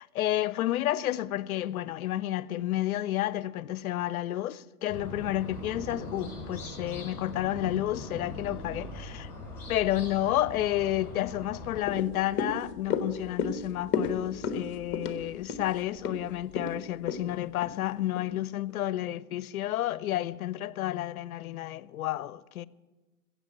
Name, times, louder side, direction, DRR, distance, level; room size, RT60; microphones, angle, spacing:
voice 1, 0.0-9.3 9.7-22.7, left 14 dB, 70° left, 0.6 m, -31 dB
sound 1, 4.9-11.8, left 1 dB, 5° left, 5.0 m, -41 dB
sound 2, 11.8-18.3 18.7-18.8, left 5 dB, 25° left, 1.2 m, -34 dB
15.5 x 7.9 x 8.1 m
hypercardioid pair, 130°, 45 cm